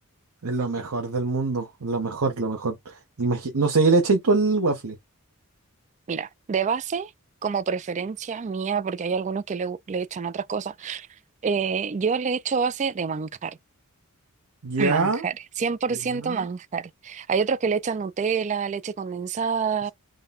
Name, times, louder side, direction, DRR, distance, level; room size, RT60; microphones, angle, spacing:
voice 1, 0.4-5.0 14.6-15.3 16.2-16.4, right 3 dB, 85° right, 0.8 m, -24 dB
voice 2, 6.1-7.1 7.4-11.1 11.4-13.6 14.8-19.9, right 6 dB, 35° right, 0.3 m, -27 dB
3.7 x 2.2 x 3.9 m
head